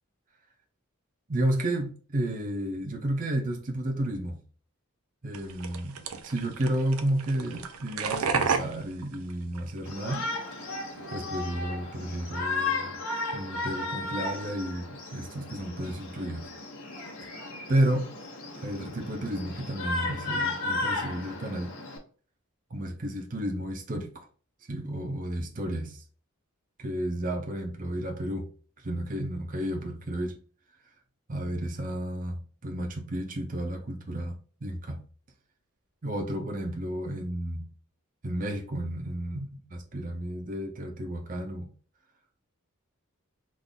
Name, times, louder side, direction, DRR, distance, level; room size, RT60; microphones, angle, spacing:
voice 1, 1.3-4.4 5.2-6.0 6.2-10.3 11.1-13.0 13.3-16.5 17.7-18.1 18.6-21.7 22.7-24.3 24.7-26.0 26.8-28.5 28.8-30.4 31.3-35.0 36.0-37.7 38.2-41.7, right 1 dB, 40° right, 0.7 m, -32 dB
sound 1, 5.3-10.1 10.5-11.2, right 5 dB, 85° right, 0.5 m, -33 dB
Shout, 9.8-22.0, left 3 dB, 80° left, 1.5 m, -34 dB
3.8 x 2.5 x 3.6 m
head